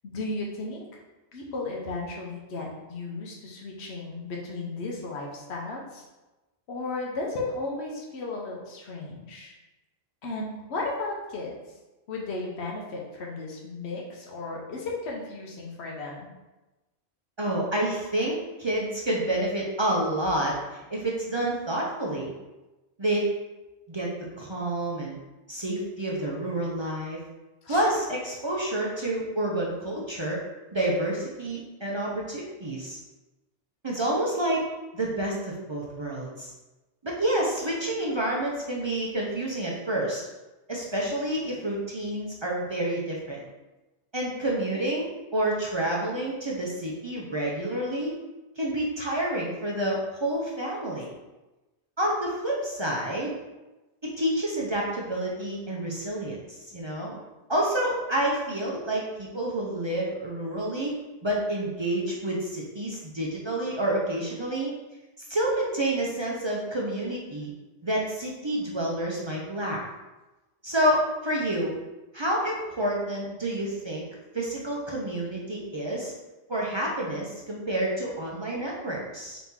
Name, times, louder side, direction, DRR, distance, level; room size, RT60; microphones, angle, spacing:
voice 1, 0.0-0.9 1.3-6.1 6.7-9.5 10.2-11.8 12.1-16.3 27.6-27.8, left 2 dB, 80° left, -2 dB, 1.0 m, -35 dB
voice 2, 17.4-22.3 23.0-23.3 23.9-24.1 24.4-25.1 25.5-27.2 27.7-30.4 30.7-33.0 33.8-34.7 34.9-36.5 37.0-40.3 40.7-43.4 44.1-48.2 48.6-51.1 52.0-53.4 54.0-57.2 57.5-64.7 65.3-67.5 67.8-69.8 70.6-71.7 72.1-74.0 74.3-76.1 76.5-79.4, right 1 dB, 35° right, -3 dB, 0.5 m, -29 dB
4.0 x 2.9 x 3.6 m, 1.1 s
omnidirectional pair, 1.1 m